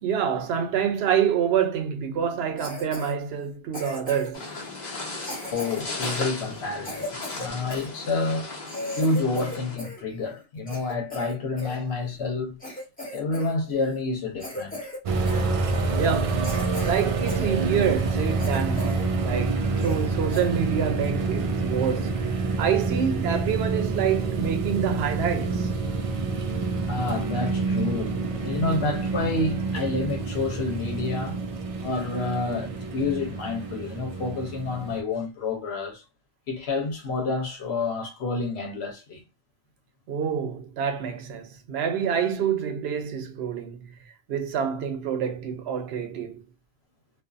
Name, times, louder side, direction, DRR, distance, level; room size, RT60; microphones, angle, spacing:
voice 1, 0.0-4.5 16.0-16.5 16.8-22.2 22.6-25.7 26.7-26.8 32.5-32.7 40.1-43.9 44.3-46.4, right 8 dB, 80° right, 0.8 m, -27 dB
Cough, 2.6-3.1 3.7-4.4 5.2-7.9 8.3-8.4 8.7-10.0 10.3-11.8 12.2-12.3 12.6-13.5 13.8-14.0 14.4-15.0 15.3-15.5 16.0-16.1 16.4-17.5 17.9-18.0 18.4-19.1 19.4-19.5 19.8-20.1 20.3-20.5 21.0-21.2, left 1 dB, 10° left, 1.0 m, -37 dB
sound 1, 4.3-9.8, left 3 dB, 45° left, 1.0 m, -36 dB
voice 2, 5.5-7.1 7.3-8.5 8.9-12.6 13.1-14.8 26.8-31.4 31.8-36.0 36.5-39.2, left 3 dB, 85° left, 1.0 m, -29 dB
sound 2, 15.1-35.0, right 4 dB, 55° right, 0.3 m, -27 dB
2.5 x 2.4 x 2.3 m
omnidirectional pair, 1.1 m